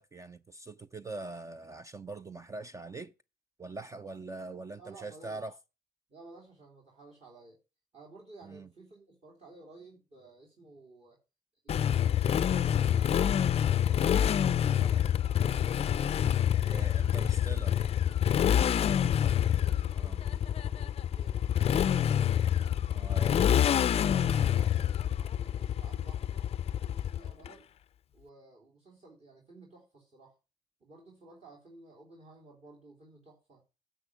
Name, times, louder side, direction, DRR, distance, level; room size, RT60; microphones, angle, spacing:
voice 1, 0.0-3.1 3.6-5.5 8.4-8.7 16.7-17.8 20.0-20.2 22.9-23.4, right 3 dB, 20° right, 0.4 m, -43 dB
voice 2, 4.7-5.4 6.1-7.6 7.9-11.2 11.6-15.7 16.5-17.2 18.4-22.8 23.2-27.7 28.1-30.4 30.8-33.6, right 3 dB, 40° right, 3.3 m, -55 dB
Motorcycle, 11.7-27.5, left 9 dB, 35° left, 0.4 m, -27 dB
10.0 x 7.0 x 4.9 m
cardioid pair, 110°, 17 cm